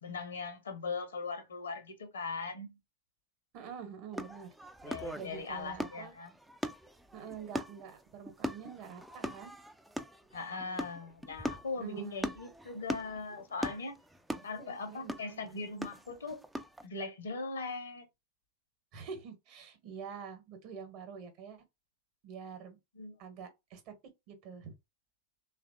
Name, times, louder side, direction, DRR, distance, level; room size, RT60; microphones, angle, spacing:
voice 1, 0.0-2.8 4.8-6.3 10.3-14.0 14.4-16.4 16.8-18.0 22.9-23.1, left 3 dB, 70° left, 0.8 m, -40 dB
voice 2, 3.5-4.5 5.1-6.1 7.1-9.5 11.8-12.3 14.5-15.5 18.9-21.6 22.2-22.8 23.2-23.9 24.3-24.7, right 7 dB, 45° right, 0.9 m, -46 dB
sound 1, 4.1-16.8, equal, 5° right, 0.3 m, -41 dB
3.1 x 2.4 x 2.4 m
figure-of-eight pair, 90°, 0 cm